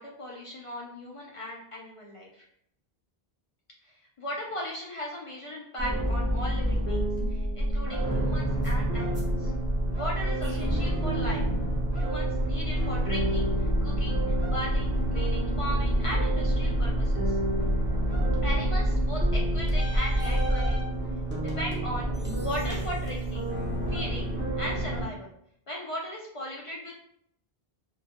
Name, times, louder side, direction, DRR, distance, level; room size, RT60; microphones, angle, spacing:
voice 1, 0.0-2.3 4.2-7.1 7.6-9.5 9.9-11.4 11.9-13.5 13.8-14.2 14.5-17.3 18.4-20.8 21.4-22.1 22.4-23.5 23.9-24.3 24.6-25.3 25.7-26.9, equal, 55° left, -2 dB, 0.3 m, -37 dB
sound 1, 5.8-25.1, right 1 dB, 15° right, 0.5 m, -27 dB
2.2 x 2.2 x 2.7 m, 0.69 s
omnidirectional pair, 1.0 m